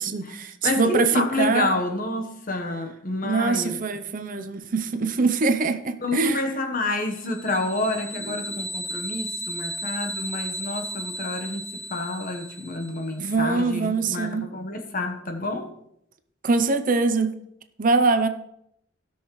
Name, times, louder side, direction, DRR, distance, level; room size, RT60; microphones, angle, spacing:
voice 1, 0.0-1.8 3.2-6.5 8.2-8.4 13.2-14.5 16.4-17.3 17.8-18.3, right 4 dB, 45° right, 0.7 m, -23 dB
voice 2, 0.6-3.8 4.4-4.5 6.0-15.7, left 2 dB, 45° left, 1.2 m, -29 dB
sound 1, 7.2-13.1, equal, 25° left, 3.7 m, -35 dB
16.5 x 6.3 x 3.2 m
head